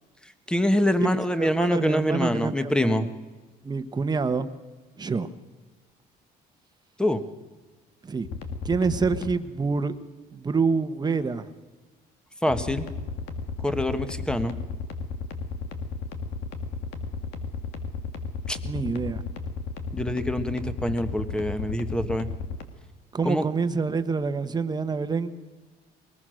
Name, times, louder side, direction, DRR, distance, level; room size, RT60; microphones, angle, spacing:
voice 1, 0.5-3.1 7.0-7.2 12.4-12.9 13.6-14.6 18.5-18.6 19.9-22.3 23.2-23.5, left 1 dB, 5° left, 10 dB, 1.4 m, -25 dB
voice 2, 1.4-3.1 3.6-4.5 5.0-5.3 8.0-8.3 8.6-10.0 10.3-11.4 18.6-19.2 23.1-25.3, right 4 dB, 25° right, 10 dB, 1.2 m, -27 dB
sound 1, 8.2-9.3 12.5-22.6, left 4 dB, 85° left, 1.9 m, -33 dB
21.5 x 19.5 x 6.4 m, 1.3 s
cardioid pair, 110°, 17 cm